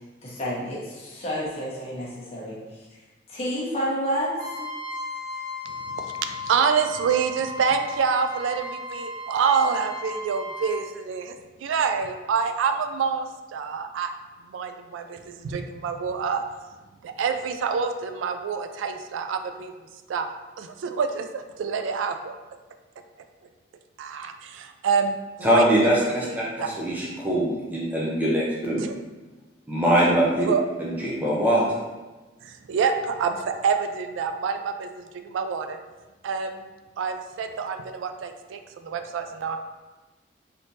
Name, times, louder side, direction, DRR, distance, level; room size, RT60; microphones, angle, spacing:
voice 1, 0.2-2.6 3.3-4.3 4.6-4.7, equal, 30° left, -6 dB, 0.8 m, -29 dB
Trumpet, 4.4-10.8, left 1 dB, 45° right, 0.8 m, -35 dB
voice 2, 5.7-14.1 14.4-16.4 17.0-19.7 20.1-20.3 20.6-22.3 24.0-25.9 26.2-26.3 26.6-26.7 28.8-29.0 30.4-30.7 32.4-35.8 36.2-36.6 37.0-39.6, right 6 dB, 85° right, 8 dB, 0.3 m, -27 dB
voice 3, 25.4-28.8 29.7-30.5 30.8-31.8, equal, 10° right, -6 dB, 0.4 m, -22 dB
3.4 x 2.8 x 2.7 m, 1.2 s
head